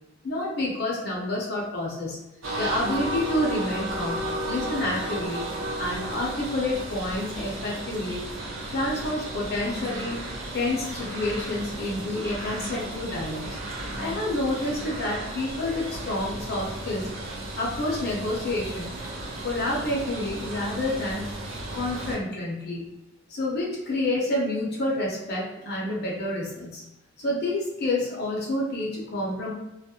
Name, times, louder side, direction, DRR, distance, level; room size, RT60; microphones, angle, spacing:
voice 1, 0.2-2.2 2.6-5.5 5.8-8.2 8.7-10.2 10.5-13.5 14.0-17.1 17.5-18.9 19.4-21.3 21.7-22.9 23.3-26.8 27.2-29.5, left 1 dB, 55° left, -3 dB, 0.6 m, -28 dB
sound 1, 2.4-22.2, right 1 dB, 90° right, 0.6 m, -34 dB
2.3 x 2.0 x 2.8 m, 0.95 s
head